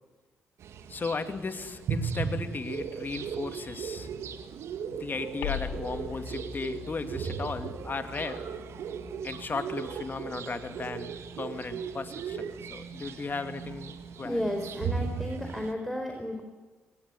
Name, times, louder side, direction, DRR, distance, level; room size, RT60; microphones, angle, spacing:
sound 1, 0.6-15.7, right 6 dB, 65° right, 1.9 m, -37 dB
voice 1, 0.9-4.1 4.9-8.4 9.2-14.4, left 4 dB, 40° left, 9 dB, 2.5 m, -36 dB
sound 2, 5.4-10.3, left 10 dB, 80° left, 2.4 m, -42 dB
voice 2, 14.2-16.4, equal, ahead, 3 dB, 4.6 m, -33 dB
24.0 x 18.5 x 9.7 m, 1.2 s
hypercardioid pair, 45°, 5 cm